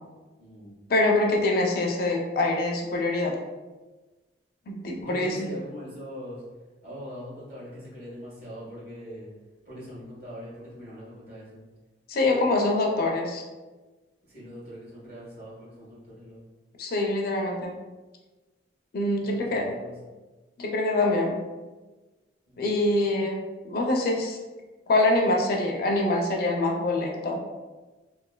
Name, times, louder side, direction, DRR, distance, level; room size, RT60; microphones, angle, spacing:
voice 1, 0.4-0.7 5.0-6.4 6.8-9.3 9.6-11.6 14.3-16.4 19.2-20.1 22.5-22.6, equal, 60° right, -8 dB, 1.4 m, -42 dB
voice 2, 0.9-3.4 4.7-5.4 12.1-13.4 16.8-17.7 18.9-19.7 20.6-21.4 22.6-23.4 23.6-24.4 24.9-27.4, left 2 dB, 55° left, 1 dB, 0.5 m, -24 dB
3.2 x 2.5 x 2.2 m, 1.2 s
head